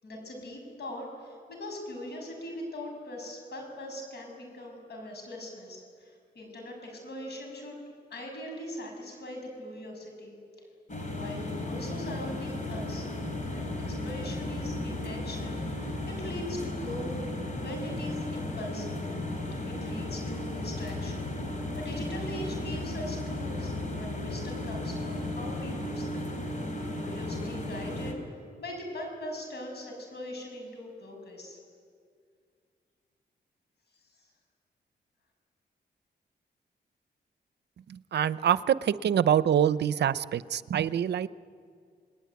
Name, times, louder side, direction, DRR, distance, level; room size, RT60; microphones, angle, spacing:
voice 1, 0.0-7.8 8.1-10.4 11.1-13.1 13.5-17.1 17.6-19.1 19.7-26.3 26.9-28.1 28.6-31.6 34.2-34.3, left 1 dB, 75° left, 2 dB, 7.6 m, -41 dB
sound 1, 10.9-28.1, left 1 dB, 45° left, 4.5 m, -35 dB
voice 2, 37.9-41.3, right 9 dB, 80° right, 16 dB, 0.6 m, -25 dB
29.5 x 20.0 x 9.4 m, 2.2 s
cardioid pair, 85°, 17 cm